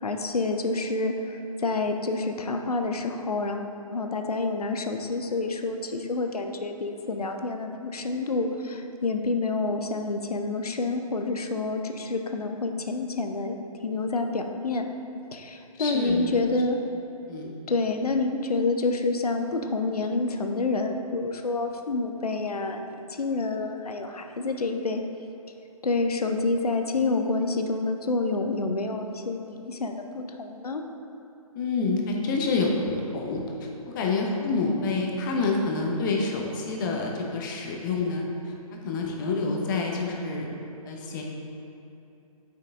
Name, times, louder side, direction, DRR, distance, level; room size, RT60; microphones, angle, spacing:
voice 1, 0.0-13.6 13.8-14.9 15.3-16.8 17.4-25.0 25.8-30.8, left 3 dB, 75° left, 5 dB, 0.7 m, -28 dB
voice 2, 15.7-16.4 17.3-17.5 31.5-38.5 38.8-40.5 40.8-41.2, left 3 dB, 30° left, 0 dB, 0.9 m, -28 dB
7.8 x 5.7 x 3.6 m, 3.0 s
figure-of-eight pair, 135°, 19 cm